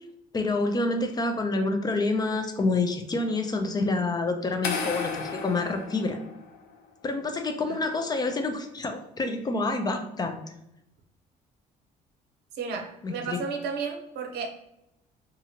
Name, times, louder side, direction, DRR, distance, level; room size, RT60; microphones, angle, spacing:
voice 1, 0.3-6.2 7.0-10.4 13.0-13.4, left 3 dB, 25° left, 6 dB, 0.3 m, -27 dB
sound 1, 4.6-6.7, left 5 dB, 70° left, 0.6 m, -34 dB
voice 2, 12.5-14.5, right 5 dB, 80° right, 2 dB, 0.6 m, -33 dB
2.8 x 2.4 x 2.8 m, 0.86 s
cardioid pair, 110°, 17 cm